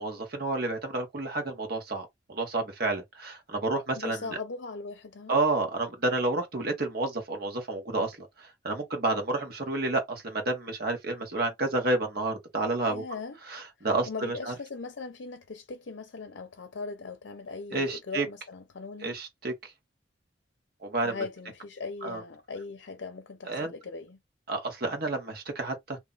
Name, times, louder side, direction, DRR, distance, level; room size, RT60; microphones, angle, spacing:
voice 1, 0.0-4.4 5.3-13.0 13.5-14.5 17.7-18.3 19.0-19.7 20.8-21.2 22.0-22.2 23.5-23.7 24.5-26.0, right 2 dB, 55° right, 1.2 m, -30 dB
voice 2, 3.9-5.4 12.8-13.4 14.1-19.1 21.0-24.2, left 4 dB, 75° left, 0.6 m, -39 dB
2.7 x 2.4 x 3.8 m
head